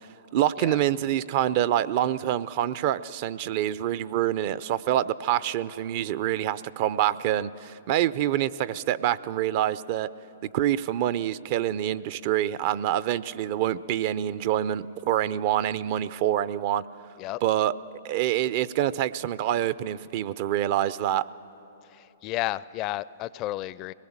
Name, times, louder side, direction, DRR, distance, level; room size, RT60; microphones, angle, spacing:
voice 1, 0.3-10.1 10.5-16.8 17.4-17.7 18.0-21.2, right 12 dB, 50° right, 17 dB, 0.5 m, -26 dB
voice 2, 21.9-23.9, left 16 dB, 35° left, 19 dB, 0.4 m, -32 dB
22.0 x 19.5 x 7.3 m, 3.0 s
hypercardioid pair, 125°, 0 cm